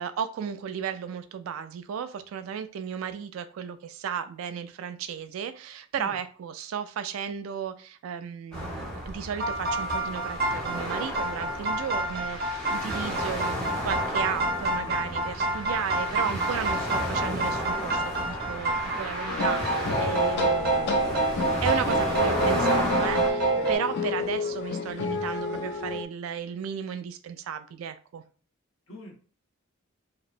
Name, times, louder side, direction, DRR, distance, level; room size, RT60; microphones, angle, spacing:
voice 1, 0.0-21.3 21.6-28.2, right 7 dB, 85° right, 0.3 m, -34 dB
sound 1, 8.5-23.3, equal, 5° left, 0.7 m, -33 dB
sound 2, 9.3-23.8, right 2 dB, 50° right, 0.8 m, -28 dB
sound 3, 19.3-26.0, left 5 dB, 55° left, 0.3 m, -32 dB
voice 2, 28.9-29.2, left 1 dB, 90° left, 0.9 m, -43 dB
2.8 x 2.0 x 2.4 m
head